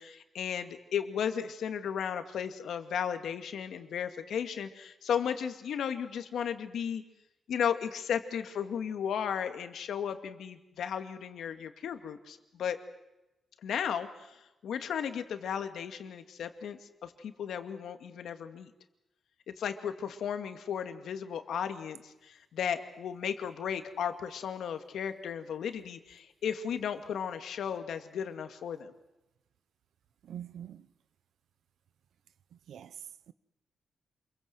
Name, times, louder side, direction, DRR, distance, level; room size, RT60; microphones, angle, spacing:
voice 1, 0.0-7.0 7.5-12.8 13.6-18.7 19.5-28.9, left 8 dB, 75° left, 2.3 m, -35 dB
voice 2, 30.2-30.9 32.5-33.3, right 9 dB, 75° right, 0.9 m, -45 dB
28.0 x 22.5 x 7.9 m
wide cardioid pair, 175°, 0 cm